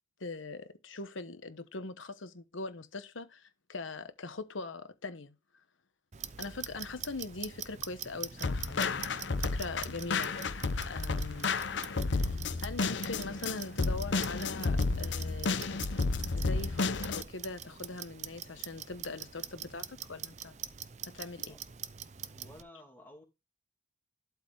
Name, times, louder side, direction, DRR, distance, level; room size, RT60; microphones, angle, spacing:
voice 1, 0.2-5.3 6.4-11.5 12.1-15.6 16.3-20.6 21.1-21.5, left 3 dB, 85° left, 1.2 m, -42 dB
Clock, 6.1-22.6, right 9 dB, 35° right, 0.5 m, -44 dB
sound 1, 8.4-17.2, left 4 dB, 70° left, 0.7 m, -32 dB
voice 2, 22.2-23.2, left 1 dB, 10° left, 2.4 m, -53 dB
12.0 x 4.5 x 3.6 m
head